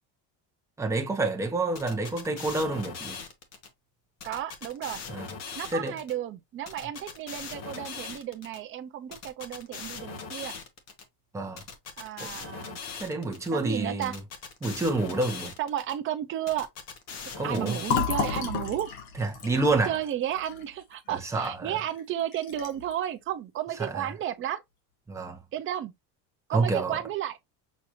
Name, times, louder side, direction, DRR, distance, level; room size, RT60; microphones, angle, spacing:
voice 1, 0.8-3.2 5.1-5.3 5.7-6.0 11.3-11.6 12.2-12.3 13.0-14.2 14.6-15.5 17.4-17.8 19.2-19.9 21.1-21.8 23.8-24.1 25.1-25.4 26.5-27.0, right 2 dB, 5° right, 0.7 m, -28 dB
sound 1, 1.7-3.7 4.2-6.1 6.7-8.6 9.1-11.0 11.6-13.5 14.0-15.9 16.5-18.4, left 5 dB, 35° left, 0.9 m, -40 dB
voice 2, 4.2-5.0 5.6-10.5 12.0-12.8 13.5-14.1 15.6-16.7 17.4-18.9 19.7-24.6 25.5-25.9 26.5-27.4, right 11 dB, 30° right, 0.4 m, -33 dB
Fill (with liquid), 17.8-21.5 21.9-22.0 22.3-22.9, left 7 dB, 70° left, 1.7 m, -32 dB
6.2 x 2.4 x 2.8 m
cardioid pair, 170°, 44 cm